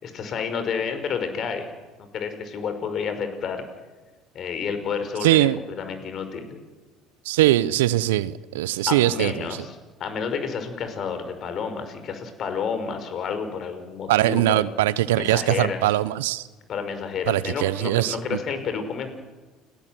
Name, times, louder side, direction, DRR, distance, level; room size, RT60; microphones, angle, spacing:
voice 1, 0.0-1.7 2.1-3.6 4.3-6.6 8.9-9.7 10.0-14.7 15.2-15.8 16.7-19.1, left 6 dB, 50° left, 5.3 m, -30 dB
voice 2, 5.2-5.6 7.2-9.5 14.1-16.5 17.3-18.4, right 15 dB, 80° right, 0.9 m, -21 dB
30.0 x 19.5 x 7.8 m
hypercardioid pair, 65°, 0 cm